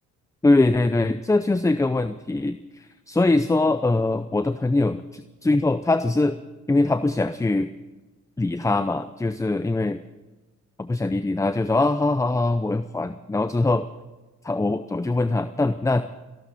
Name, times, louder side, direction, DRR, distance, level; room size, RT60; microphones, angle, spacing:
voice 1, 0.4-6.4 6.7-7.7 8.4-10.0 10.8-13.9 14.4-16.0, left 2 dB, 10° left, 11 dB, 0.6 m, -22 dB
27.0 x 12.5 x 4.2 m, 1.2 s
cardioid pair, 90°, 30 cm